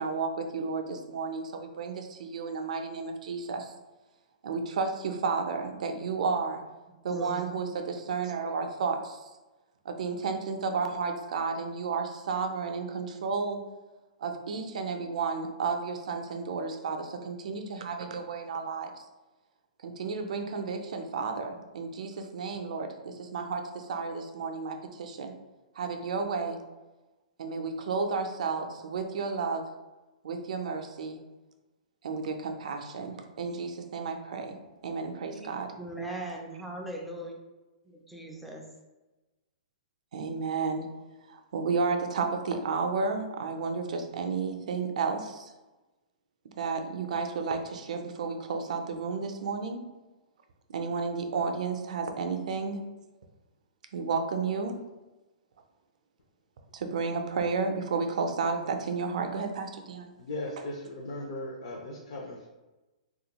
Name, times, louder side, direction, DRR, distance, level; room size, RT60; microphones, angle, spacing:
voice 1, 0.0-3.7 4.4-6.6 7.0-9.2 9.8-13.6 14.2-18.9 19.8-25.3 25.8-26.6 27.4-29.7 30.2-31.2 32.0-34.6 34.8-35.7 40.1-40.9 41.3-45.5 46.6-49.8 50.7-52.8 53.9-54.8 56.7-60.1, right 4 dB, 65° right, 5 dB, 0.5 m, -32 dB
voice 2, 7.1-7.4 35.3-35.5 35.8-37.3 37.9-38.7, right 2 dB, ahead, -2 dB, 0.3 m, -39 dB
voice 3, 60.2-62.5, left 1 dB, 50° left, -3 dB, 0.5 m, -37 dB
3.3 x 2.4 x 2.9 m, 1.1 s
hypercardioid pair, 165°, 4 cm